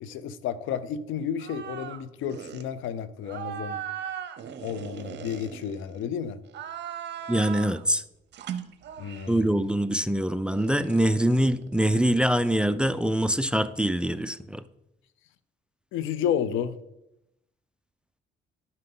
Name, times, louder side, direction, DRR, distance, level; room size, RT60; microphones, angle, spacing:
voice 1, 0.0-3.8 4.6-6.4 9.0-9.6 15.9-16.7, left 8 dB, 85° left, 15 dB, 0.5 m, -31 dB
sound 1, 1.4-2.0 2.3-2.7 3.3-6.0 6.5-7.8 8.3-9.4 10.5-12.3, right 8 dB, 60° right, 0.7 m, -38 dB
voice 2, 7.3-8.0 9.3-14.6, right 1 dB, 5° right, 14 dB, 0.3 m, -24 dB
11.0 x 5.6 x 3.8 m, 0.86 s
cardioid pair, 90°, 20 cm